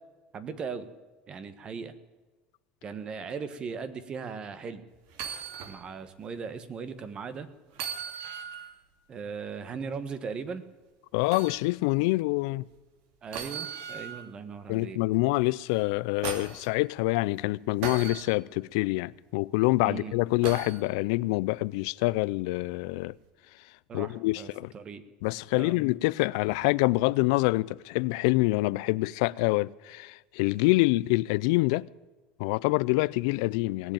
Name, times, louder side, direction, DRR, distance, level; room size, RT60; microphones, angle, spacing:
voice 1, 0.3-0.9 1.3-1.9 2.8-4.8 5.6-7.5 9.1-10.6 13.2-15.0 19.8-20.2 23.9-25.0 25.6-25.8, right 5 dB, 30° right, 1.4 m, -38 dB
sound 1, 5.1-5.8 6.2-6.3 7.7-8.7 11.3-11.6 13.3-14.3 15.7-16.7 17.8-18.2 20.4-20.8 22.6-22.7, right 7 dB, 65° right, 2.5 m, -37 dB
voice 2, 11.1-12.6 14.7-23.1 23.9-24.7 25.2-31.9 32.4-33.9, left 21 dB, 80° left, 0.4 m, -26 dB
19.0 x 7.9 x 8.8 m
supercardioid pair, 130°, 3 cm